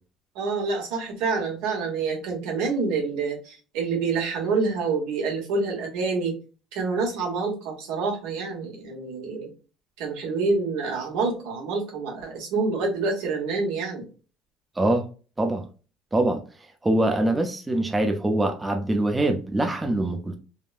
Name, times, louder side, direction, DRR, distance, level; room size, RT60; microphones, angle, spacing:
voice 1, 0.3-6.4 6.7-9.5 10.0-14.1, right 4 dB, 90° right, 1.3 m, -27 dB
voice 2, 14.8-15.1 15.4-15.7 16.1-16.4 16.8-20.4, right 1 dB, 15° right, 0.5 m, -23 dB
3.4 x 2.2 x 2.4 m
cardioid pair, 120°, 0 cm